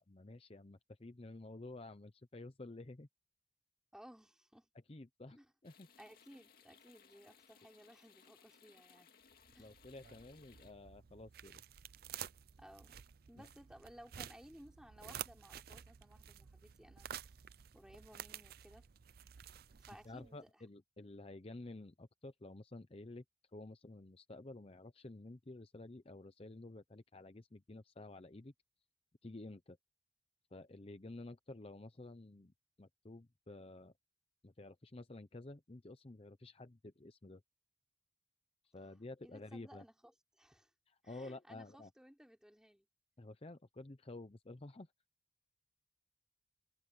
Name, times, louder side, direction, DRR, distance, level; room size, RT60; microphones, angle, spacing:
voice 1, 0.0-3.1 4.9-5.4 5.6-5.9 9.6-11.6 13.4-13.5 20.0-23.2 23.5-28.5 29.2-29.8 30.5-32.5 32.8-33.9 34.4-37.4 38.6-39.8 40.9-41.9 43.2-44.9, left 2 dB, 30° left, 0.7 m, -51 dB
voice 2, 3.9-4.7 5.3-5.5 6.0-9.1 9.5-9.7 12.6-13.0 13.3-17.3 17.7-18.9 19.8-20.5 39.2-40.7 41.0-42.9, equal, 5° right, 3.4 m, -59 dB
sound 1, 5.6-10.7, left 6 dB, 55° left, 2.3 m, -65 dB
sound 2, 9.3-20.4, right 9 dB, 55° right, 0.5 m, -52 dB
head